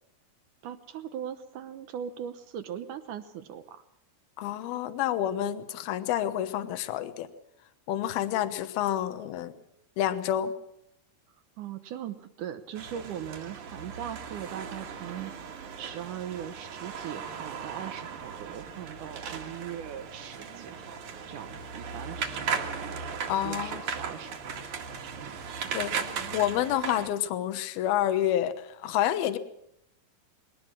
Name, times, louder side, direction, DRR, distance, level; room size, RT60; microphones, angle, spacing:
voice 1, 0.6-3.8 11.6-15.3 15.8-21.0 21.3-23.1 23.4-24.5 25.2-25.4, right 9 dB, 70° right, 10 dB, 2.0 m, -40 dB
voice 2, 4.4-7.3 7.9-9.5 10.0-10.6 23.3-23.8 25.7-25.9 26.3-29.4, left 11 dB, 75° left, 11 dB, 2.9 m, -28 dB
sound 1, 12.8-27.1, right 6 dB, 55° right, 3.1 m, -37 dB
21.0 x 19.0 x 7.3 m, 0.76 s
omnidirectional pair, 4.6 m